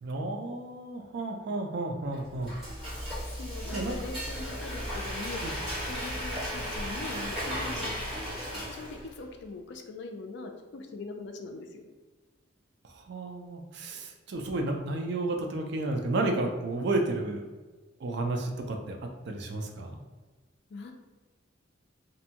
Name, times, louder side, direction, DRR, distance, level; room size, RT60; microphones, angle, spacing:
voice 1, 0.0-2.6 3.7-3.9 5.4-5.5 12.8-17.4 18.0-19.0 19.2-20.0, right 2 dB, 60° right, 3 dB, 0.4 m, -32 dB
Frying (food), 2.1-9.2, equal, 5° right, 1.1 m, -35 dB
voice 2, 3.3-5.5 5.9-7.9 8.7-11.8 20.7-20.9, left 3 dB, 60° left, 4 dB, 0.3 m, -41 dB
2.6 x 2.2 x 2.7 m, 1.3 s
head